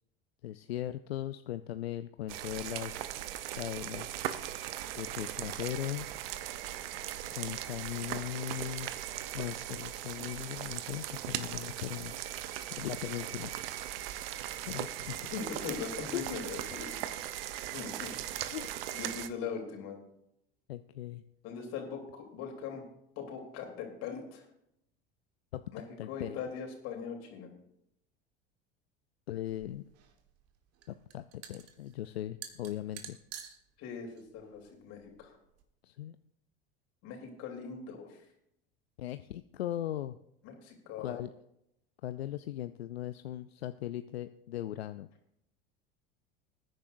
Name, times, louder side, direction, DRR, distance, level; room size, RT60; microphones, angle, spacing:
voice 1, 0.4-3.0 3.6-4.2 4.9-6.1 7.3-8.9 9.3-13.5 14.6-15.3 16.1-16.2 18.5-18.7 20.7-21.2 25.5-25.6 26.0-26.4 29.3-29.8 30.9-33.2 35.8-36.2 39.0-40.2 41.0-41.3 42.0-45.1, left 12 dB, 85° left, 11 dB, 0.5 m, -38 dB
sound 1, 2.3-19.3, right 12 dB, 70° right, 0.8 m, -39 dB
voice 2, 15.3-16.9 17.7-18.1 18.9-20.0 21.4-22.8 23.1-24.4 25.7-27.5 33.8-35.3 37.0-38.2 40.4-41.1, left 6 dB, 55° left, 2 dB, 3.3 m, -40 dB
sound 2, 29.5-35.6, right 9 dB, 50° right, 1.5 m, -51 dB
21.0 x 9.8 x 2.6 m, 0.79 s
hypercardioid pair, 80°, 30 cm